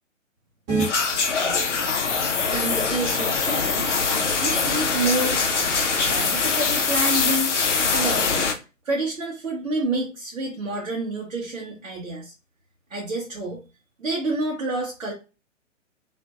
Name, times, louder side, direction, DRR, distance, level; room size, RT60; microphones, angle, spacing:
sound 1, 0.7-0.9 2.3-6.6, right 3 dB, 15° right, 0.5 m, -33 dB
sound 2, 0.8-8.5, left 5 dB, 65° left, 0.6 m, -23 dB
voice 1, 1.3-1.8 2.5-3.9 4.4-5.4 6.0-7.6 7.9-8.5 8.8-12.3 12.9-13.6 14.0-15.1, right 2 dB, 75° right, -2 dB, 0.7 m, -28 dB
2.5 x 2.1 x 2.2 m, 0.31 s
figure-of-eight pair, 120°, 39 cm